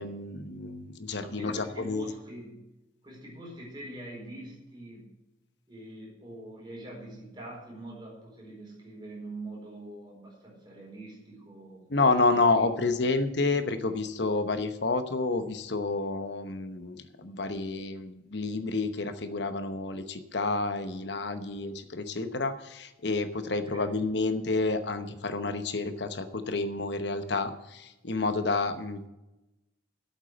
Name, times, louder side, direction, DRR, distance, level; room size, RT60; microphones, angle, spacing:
voice 1, 0.0-2.1 11.9-29.1, left 3 dB, 60° left, 10 dB, 0.9 m, -29 dB
voice 2, 1.2-2.6 3.0-5.1 5.7-12.1 12.4-12.7 23.5-23.9, right 1 dB, 25° right, -3 dB, 4.4 m, -44 dB
8.3 x 8.2 x 8.9 m, 0.99 s
head